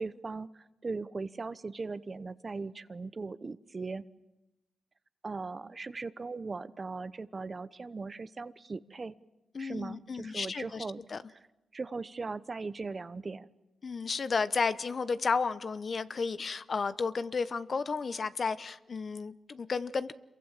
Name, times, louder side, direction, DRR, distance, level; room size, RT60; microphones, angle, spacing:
voice 1, 0.0-4.0 5.2-9.2 9.6-11.0 11.7-13.5, right 4 dB, 40° right, 15 dB, 0.9 m, -39 dB
voice 2, 9.5-11.2 13.8-20.1, left 4 dB, 55° left, 14 dB, 0.9 m, -32 dB
27.5 x 23.0 x 7.5 m, 0.99 s
cardioid pair, 55°, 0 cm